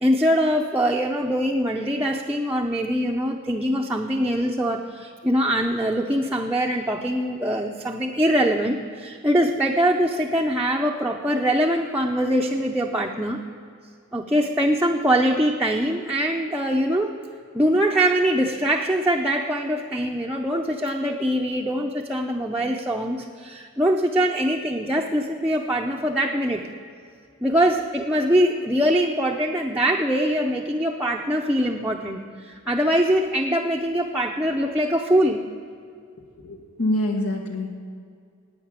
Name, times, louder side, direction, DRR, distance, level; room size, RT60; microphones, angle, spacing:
voice 1, 0.0-13.4 14.1-17.1 17.5-26.6 27.4-35.4, equal, 5° right, -2 dB, 0.6 m, -23 dB
voice 2, 36.4-37.9, left 1 dB, 80° left, 2 dB, 2.0 m, -26 dB
11.0 x 9.3 x 8.8 m, 2.3 s
head